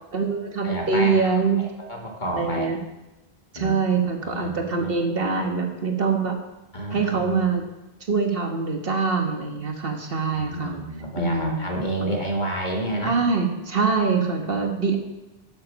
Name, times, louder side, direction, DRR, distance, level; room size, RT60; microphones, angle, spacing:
voice 1, 0.1-1.6 2.3-2.8 3.5-6.4 6.9-7.6 8.1-10.8 11.2-11.7 12.0-12.1 13.0-15.0, right 4 dB, 60° right, 3 dB, 1.5 m, -24 dB
voice 2, 0.6-2.7 3.5-3.8 4.2-4.9 6.7-7.4 10.3-13.2 14.4-14.7, right 1 dB, 45° left, 0 dB, 2.0 m, -30 dB
12.0 x 7.3 x 5.2 m, 0.99 s
omnidirectional pair, 1.1 m